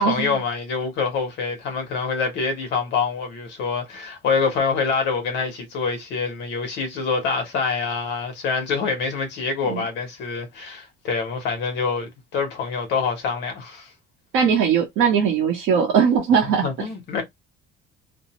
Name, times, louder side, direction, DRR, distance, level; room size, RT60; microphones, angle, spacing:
voice 1, 0.0-13.9 16.4-17.2, left 5 dB, 60° left, 1.0 m, -26 dB
voice 2, 14.3-16.7, right 7 dB, 65° right, 0.8 m, -19 dB
2.5 x 2.0 x 2.8 m
cardioid pair, 160°, 21 cm